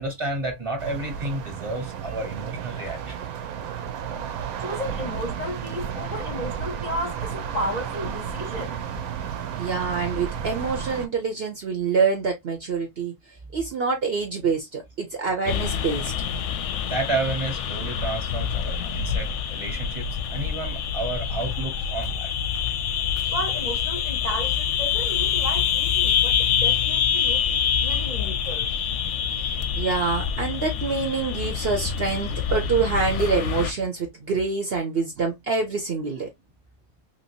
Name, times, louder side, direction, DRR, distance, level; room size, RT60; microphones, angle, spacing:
voice 1, 0.0-3.2 16.9-22.3, right 2 dB, 25° right, 0.9 m, -31 dB
sound 1, 0.8-11.1, right 8 dB, 80° right, 1.1 m, -32 dB
voice 2, 4.6-8.8 23.3-28.7, equal, 40° left, 0.7 m, -33 dB
voice 3, 9.6-13.1 13.5-16.1 29.8-36.3, right 4 dB, 55° right, 0.8 m, -26 dB
sound 2, 15.5-33.7, left 8 dB, 65° left, 0.8 m, -26 dB
2.9 x 2.9 x 2.7 m
omnidirectional pair, 1.5 m